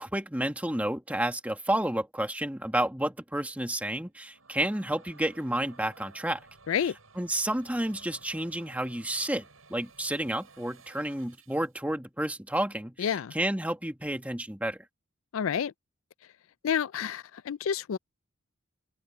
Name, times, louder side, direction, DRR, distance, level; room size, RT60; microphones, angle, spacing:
voice 1, 0.0-6.4 7.2-14.8, right 1 dB, 5° right, 1.8 m, -31 dB
sound 1, 4.1-11.8, right 4 dB, 80° right, 7.7 m, -56 dB
voice 2, 13.0-13.3 15.3-15.7 16.6-18.0, left 8 dB, 75° left, 0.4 m, -29 dB
head